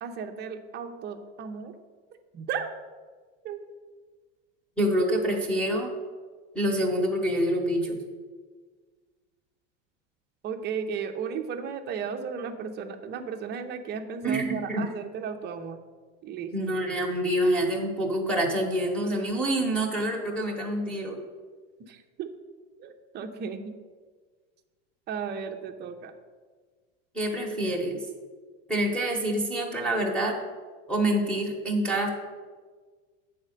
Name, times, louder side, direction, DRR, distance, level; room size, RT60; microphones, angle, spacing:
voice 1, 0.0-1.7 2.3-2.7 3.4-3.6 10.4-15.8 16.2-16.5 21.9-22.3 22.8-23.7 25.1-26.1, right 6 dB, 30° right, 6 dB, 0.7 m, -35 dB
voice 2, 4.8-5.9 6.5-8.0 14.2-14.8 16.5-21.2 27.1-28.0 28.7-30.3 30.9-32.1, right 1 dB, 5° left, 0 dB, 1.2 m, -26 dB
8.6 x 4.2 x 6.6 m, 1.5 s
supercardioid pair, 140°, 36 cm